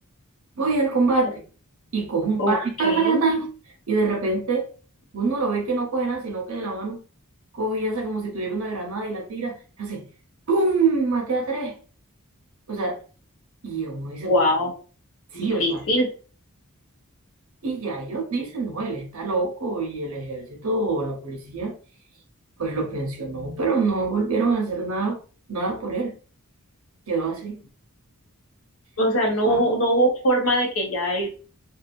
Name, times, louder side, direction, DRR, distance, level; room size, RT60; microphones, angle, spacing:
voice 1, 0.6-1.4 1.9-3.5 3.9-4.7 5.1-7.0 7.5-10.0 10.5-11.7 12.7-13.0 13.6-14.3 15.3-15.8 17.6-21.7 22.6-25.2 25.5-26.1 27.1-27.6 29.4-29.6, right 3 dB, 70° right, 1 dB, 0.9 m, -25 dB
voice 2, 2.8-3.2 14.2-14.7 15.3-16.1 29.0-31.4, equal, 65° left, 0 dB, 0.9 m, -22 dB
2.7 x 2.3 x 2.5 m, 0.37 s
head